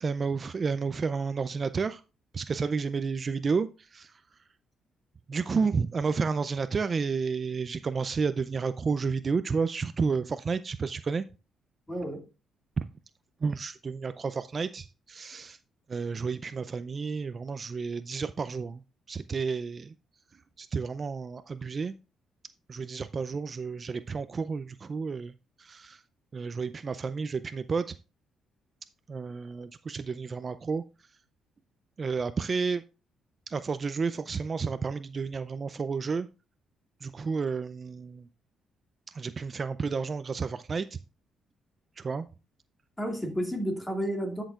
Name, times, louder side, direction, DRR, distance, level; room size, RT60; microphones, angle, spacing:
voice 1, 0.0-2.0 2.3-4.2 5.3-11.3 12.8-12.9 13.4-15.6 15.9-18.8 19.1-19.9 20.6-21.9 22.7-25.3 25.6-26.0 26.3-28.0 29.1-30.8 32.0-32.8 33.5-36.3 37.0-38.3 39.1-41.0 42.0-42.3, right 5 dB, 40° right, 0.4 m, -31 dB
voice 2, 11.9-12.2 43.0-44.4, equal, 15° left, 2.3 m, -31 dB
11.5 x 6.4 x 2.4 m
cardioid pair, 90°, 0 cm